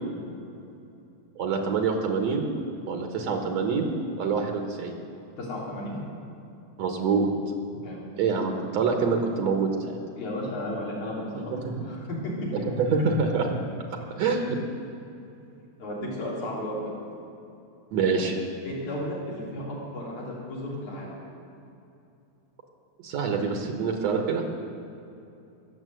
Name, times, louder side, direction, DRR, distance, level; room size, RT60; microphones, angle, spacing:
voice 1, 1.4-2.5 2.9-3.9 4.2-4.9 6.8-7.3 8.2-10.0 11.5-11.7 12.8-13.5 14.2-14.6 17.9-18.3 23.0-24.4, right 5 dB, 70° right, 3 dB, 2.3 m, -26 dB
voice 2, 5.4-6.0 7.8-8.1 10.2-11.3 11.8-12.3 15.8-16.9 18.6-21.2, left 1 dB, 80° left, -5 dB, 4.7 m, -34 dB
20.0 x 7.5 x 7.9 m, 2.7 s
omnidirectional pair, 3.4 m